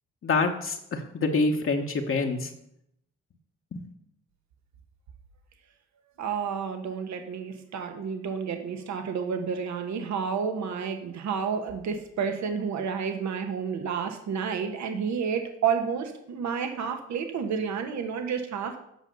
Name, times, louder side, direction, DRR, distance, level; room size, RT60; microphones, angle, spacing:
voice 1, 0.2-2.5 3.7-3.8, left 3 dB, 45° left, 3 dB, 1.1 m, -26 dB
voice 2, 6.2-18.8, right 6 dB, 65° right, 6 dB, 1.2 m, -30 dB
8.3 x 5.5 x 6.7 m, 0.76 s
cardioid pair, 90°, 30 cm